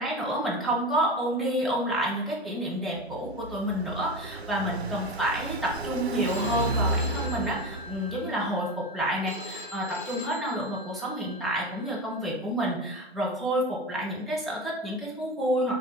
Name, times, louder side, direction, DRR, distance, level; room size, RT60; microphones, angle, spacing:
voice 1, 0.0-15.8, equal, ahead, -6 dB, 0.3 m, -29 dB
Car passing by, 3.0-8.5, right 2 dB, 70° right, 0.5 m, -33 dB
Telephone, 6.3-12.2, left 2 dB, 50° left, 0.5 m, -43 dB
2.5 x 2.4 x 4.0 m, 0.90 s
figure-of-eight pair, 160°, 33 cm